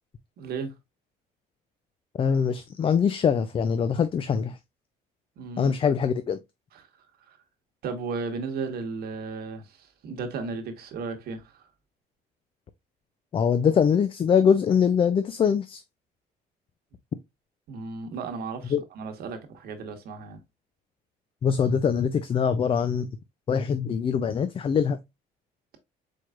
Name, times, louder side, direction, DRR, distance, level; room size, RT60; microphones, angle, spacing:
voice 1, 0.4-0.7 5.4-5.8 6.7-7.4 7.8-11.7 17.7-20.4, right 4 dB, 65° right, 1.2 m, -35 dB
voice 2, 2.2-4.6 5.6-6.4 13.3-15.8 18.7-18.8 21.4-23.1 23.5-25.0, left 7 dB, 30° left, 0.4 m, -23 dB
4.6 x 4.5 x 2.4 m
cardioid pair, 110°, 17 cm